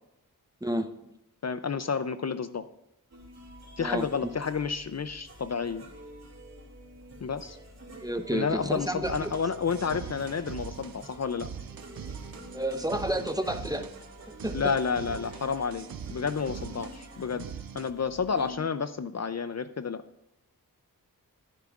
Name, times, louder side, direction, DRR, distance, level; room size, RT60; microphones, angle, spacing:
voice 1, 0.6-1.1 3.8-4.3 8.0-9.3 12.5-13.9 14.3-14.7, right 1 dB, 10° right, 8 dB, 0.7 m, -31 dB
voice 2, 1.4-2.7 3.8-5.8 7.2-7.6 8.3-11.5 14.5-17.5 17.7-20.0, left 5 dB, 50° left, 12 dB, 0.5 m, -30 dB
sound 1, 3.1-18.6, equal, 45° right, 2.5 m, -48 dB
sound 2, 9.0-17.9, right 7 dB, 70° right, 0.6 m, -42 dB
13.0 x 10.5 x 2.4 m, 0.86 s
wide cardioid pair, 65°, 36 cm